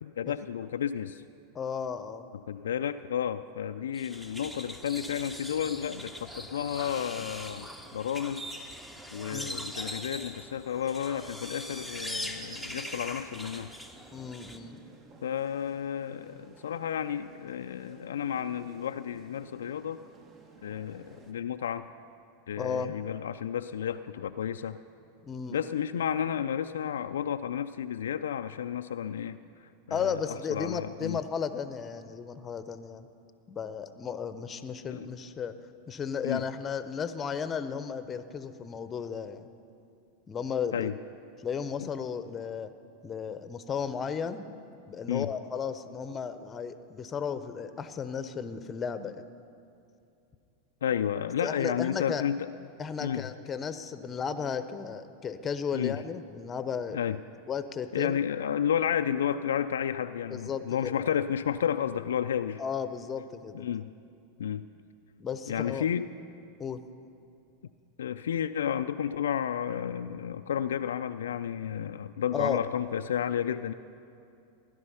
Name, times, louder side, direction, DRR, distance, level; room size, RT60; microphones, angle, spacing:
voice 1, 0.0-1.2 2.5-8.4 9.1-13.7 15.2-20.0 20.6-21.8 22.5-24.8 25.5-29.4 29.9-30.2 30.5-31.2 34.9-35.1 36.2-36.4 40.7-41.0 41.8-41.9 45.1-45.3 50.8-52.5 53.0-53.3 55.7-56.0 56.9-57.2 57.9-62.6 63.5-63.9 64.4-64.6 65.5-66.1 68.0-73.7, left 9 dB, 80° left, 9 dB, 0.4 m, -32 dB
voice 2, 1.5-2.3 9.3-9.6 14.1-14.8 22.6-22.9 25.3-25.6 29.9-33.1 33.5-35.5 35.9-39.5 40.3-40.9 41.4-42.7 43.0-44.4 44.9-49.2 51.4-52.2 52.8-57.0 57.5-58.2 60.3-61.1 62.6-63.7 65.2-65.8 66.6-66.8 72.3-72.6, left 6 dB, 25° left, 11 dB, 0.8 m, -34 dB
sound 1, 3.9-14.6, equal, 5° right, 1.1 m, -41 dB
sound 2, 11.7-21.3, right 3 dB, 35° right, 1.6 m, -55 dB
16.5 x 11.0 x 5.6 m, 2.5 s
hypercardioid pair, 100°, 0 cm